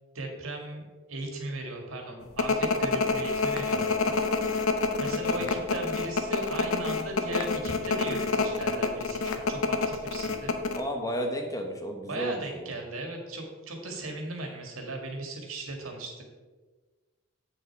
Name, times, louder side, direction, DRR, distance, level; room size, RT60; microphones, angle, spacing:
voice 1, 0.1-4.2 5.0-10.5 12.1-16.2, right 2 dB, 85° right, 2 dB, 1.9 m, -37 dB
sound 1, 2.4-10.8, left 4 dB, 90° left, 0.8 m, -27 dB
voice 2, 10.7-12.7, equal, 15° left, 2 dB, 1.1 m, -33 dB
8.3 x 6.4 x 4.6 m, 1.3 s
head